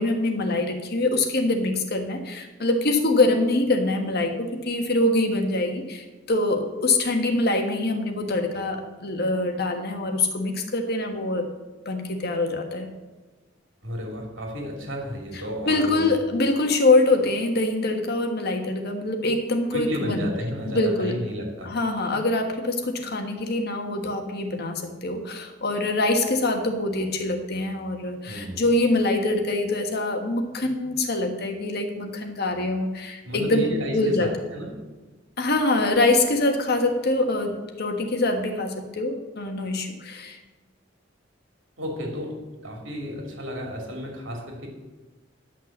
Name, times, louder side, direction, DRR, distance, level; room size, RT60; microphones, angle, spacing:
voice 1, 0.0-11.5 11.8-12.9 15.7-20.3 20.6-21.1 21.6-34.3 35.4-40.4, left 2 dB, 55° left, 4 dB, 1.5 m, -24 dB
voice 2, 13.8-16.1 19.7-21.7 28.3-28.6 33.2-34.7 41.8-42.3 42.6-44.7, equal, 85° right, 1 dB, 2.7 m, -32 dB
10.5 x 5.9 x 7.3 m, 1.2 s
head